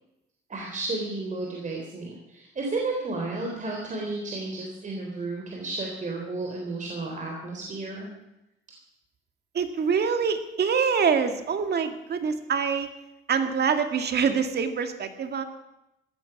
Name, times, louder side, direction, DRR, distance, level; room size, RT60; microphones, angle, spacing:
voice 1, 0.5-8.1, right 2 dB, 40° right, 0 dB, 3.7 m, -32 dB
voice 2, 9.5-12.9 13.3-15.4, right 6 dB, 55° right, 7 dB, 2.0 m, -25 dB
16.0 x 13.0 x 6.0 m, 0.90 s
cardioid pair, 90°, 20 cm